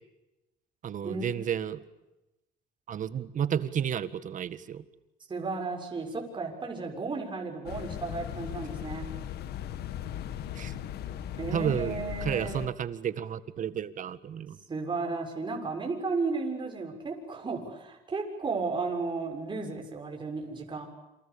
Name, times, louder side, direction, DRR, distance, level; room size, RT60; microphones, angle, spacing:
voice 1, 0.8-1.8 2.9-4.8 10.5-10.8 11.5-14.6, right 9 dB, 50° right, 13 dB, 1.8 m, -32 dB
voice 2, 5.3-9.1 11.4-12.6 14.7-20.9, right 4 dB, 30° right, 1 dB, 6.8 m, -34 dB
sound 1, 7.7-12.7, left 11 dB, 70° left, 1.7 m, -38 dB
28.5 x 27.5 x 7.1 m, 0.99 s
cardioid pair, 110°, 17 cm